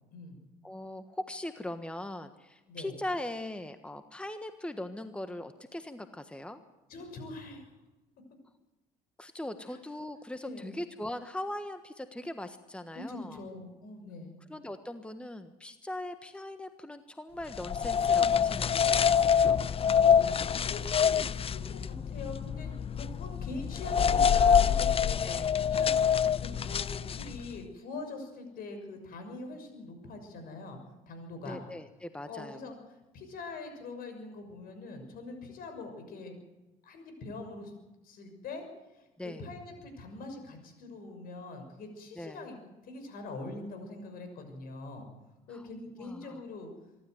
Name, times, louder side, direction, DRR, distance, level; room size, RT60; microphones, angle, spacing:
voice 1, 0.6-6.6 9.2-13.4 14.5-19.7 25.2-25.5 31.4-32.6 39.2-39.4 42.2-42.4 45.5-45.6 46.0-46.4, left 1 dB, 5° left, 9 dB, 1.4 m, -40 dB
voice 2, 6.9-7.7 9.7-9.8 10.4-10.7 12.9-14.4 19.7-30.8 31.1-31.6 32.3-32.8 33.1-36.4 36.8-37.7 38.0-38.6 38.9-42.6 42.8-45.1 45.5-46.7, left 3 dB, 65° left, 6 dB, 6.4 m, -43 dB
sound 1, 17.5-27.5, left 7 dB, 35° left, 0.7 m, -26 dB
24.5 x 13.0 x 9.5 m, 1.0 s
supercardioid pair, 75°, 16 cm